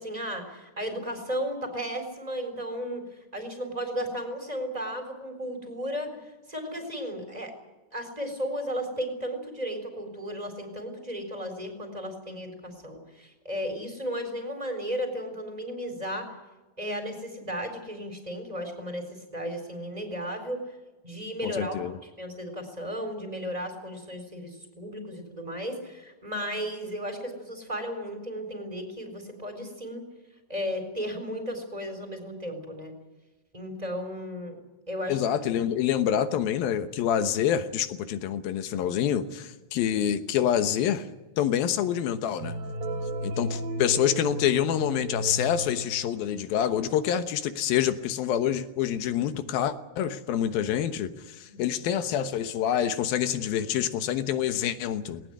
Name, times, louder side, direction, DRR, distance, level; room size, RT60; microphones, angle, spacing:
voice 1, 0.0-7.5 7.9-16.3 16.8-20.6 21.0-30.0 30.5-32.9 33.5-35.2 51.5-51.7, equal, 10° right, 6 dB, 3.7 m, -34 dB
voice 2, 21.4-22.0 35.1-41.1 41.4-42.5 43.2-51.1 51.4-55.2, left 10 dB, 70° left, 11 dB, 2.8 m, -27 dB
sound 1, 42.4-46.5, right 1 dB, 70° right, 3.0 m, -34 dB
19.0 x 19.0 x 9.5 m, 1.1 s
omnidirectional pair, 4.6 m